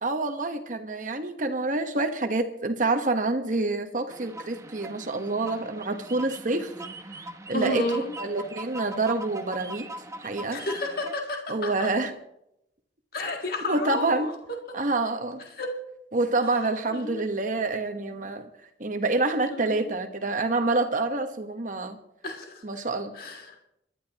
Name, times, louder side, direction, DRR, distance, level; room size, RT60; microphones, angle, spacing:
voice 1, 0.0-6.7 7.5-7.9 8.2-9.9 10.2-10.6 11.5-12.1 13.2-13.3 13.6-14.3 14.7-15.4 16.1-18.5 18.8-22.0 22.6-23.1, right 2 dB, 45° right, 6 dB, 1.2 m, -27 dB
sound 1, 4.1-11.2, right 2 dB, 15° right, 0.8 m, -41 dB
voice 2, 7.5-8.1 10.5-11.9 13.1-14.3 15.6-15.7 16.9-17.2 19.5-19.8 22.2-22.5 23.2-23.6, left 1 dB, 55° left, 2 dB, 1.8 m, -31 dB
30.0 x 12.0 x 3.0 m, 0.81 s
head